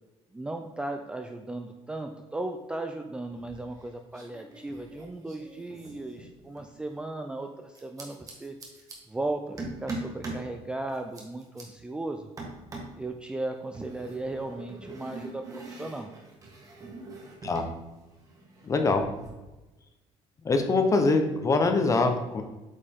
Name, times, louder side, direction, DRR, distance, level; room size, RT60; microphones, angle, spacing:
voice 1, 0.3-8.6 9.1-12.3 13.0-16.1, right 2 dB, 10° right, 4 dB, 0.4 m, -36 dB
sound 1, 3.3-3.9 4.1-6.7 7.7-9.0 9.6-10.5 10.9-11.6 12.4-13.0 13.7-17.7 18.0-19.3, right 2 dB, 30° right, 1.6 m, -42 dB
voice 2, 18.6-19.0 20.4-22.4, left 3 dB, 25° left, 6 dB, 0.9 m, -23 dB
8.5 x 5.0 x 3.7 m, 1.1 s
cardioid pair, 140°, 12 cm